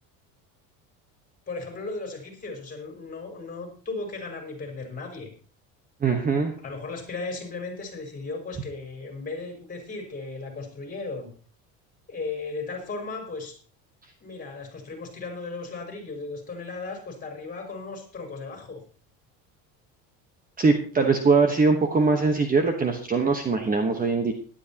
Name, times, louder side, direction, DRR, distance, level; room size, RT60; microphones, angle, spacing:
voice 1, 1.5-5.3 6.6-11.3 12.1-13.6 14.2-18.8, left 3 dB, 20° left, 2 dB, 5.2 m, -36 dB
voice 2, 6.0-6.5 20.6-24.3, right 4 dB, 20° right, 5 dB, 1.2 m, -22 dB
18.0 x 11.5 x 2.9 m, 0.41 s
cardioid pair, 135°, 38 cm